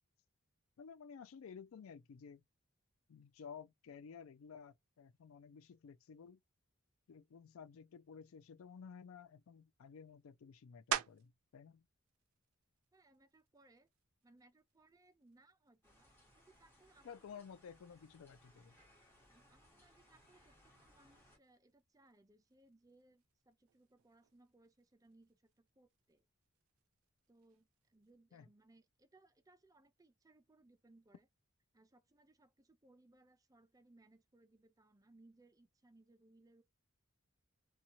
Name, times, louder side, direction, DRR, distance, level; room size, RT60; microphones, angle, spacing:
voice 1, 0.8-2.4 3.1-6.4 7.1-11.8 17.0-18.7 28.3-28.5, left 6 dB, 70° left, 0.4 m, -54 dB
sound 1, 10.9-11.5 12.1-16.5 17.0-22.2 22.5-28.1, right 9 dB, 80° right, 0.4 m, -49 dB
voice 2, 12.9-13.9 14.2-17.4 18.6-18.7 19.3-26.3 27.3-31.3 31.7-36.6, right 2 dB, 15° right, 0.5 m, -68 dB
sound 2, 15.8-21.4, equal, 10° left, 1.2 m, -67 dB
2.7 x 2.3 x 2.8 m
head